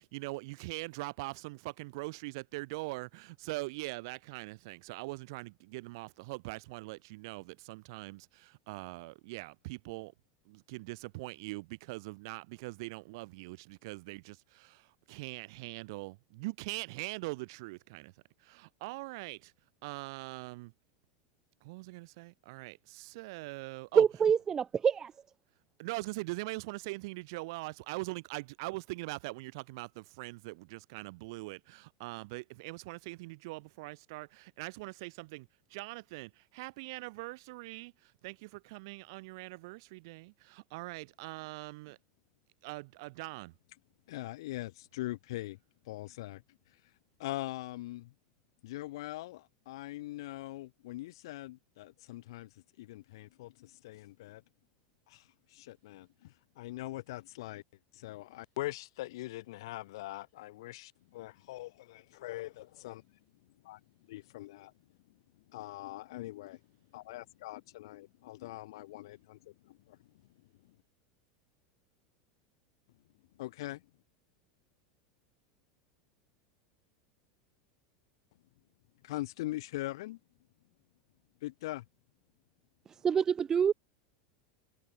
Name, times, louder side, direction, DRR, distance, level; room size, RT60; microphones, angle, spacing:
voice 1, 0.0-10.1 10.5-18.1 18.4-19.5 19.8-20.7 21.6-24.0 25.8-42.0 42.6-43.5, right 24 dB, 60° right, 3.3 m, -42 dB
voice 2, 24.0-25.1 82.9-83.7, right 7 dB, 20° right, 0.7 m, -26 dB
voice 3, 44.1-45.6 45.9-46.4 47.2-48.1 48.6-52.5 52.8-54.4 55.1-55.2 55.5-57.6 57.9-63.0 63.6-63.8 64.1-64.7 65.5-66.6 66.9-70.0 73.4-73.8 79.0-80.2 81.4-81.8, left 17 dB, 75° left, 1.5 m, -42 dB
supercardioid pair, 155°, 3 cm